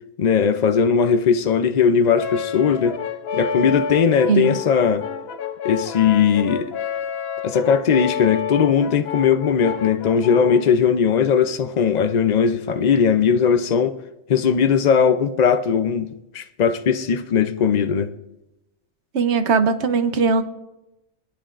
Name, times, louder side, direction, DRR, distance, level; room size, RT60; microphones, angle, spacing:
voice 1, 0.2-3.0 3.3-5.1 5.6-6.7 7.4-14.0 14.3-16.1 16.3-18.1, left 7 dB, 75° left, 0.4 m, -18 dB
Brass instrument, 2.1-10.7, left 6 dB, 55° left, 0.8 m, -29 dB
voice 2, 4.3-4.6 19.1-20.4, right 5 dB, 60° right, 1.1 m, -19 dB
24.5 x 10.0 x 2.5 m
omnidirectional pair, 1.4 m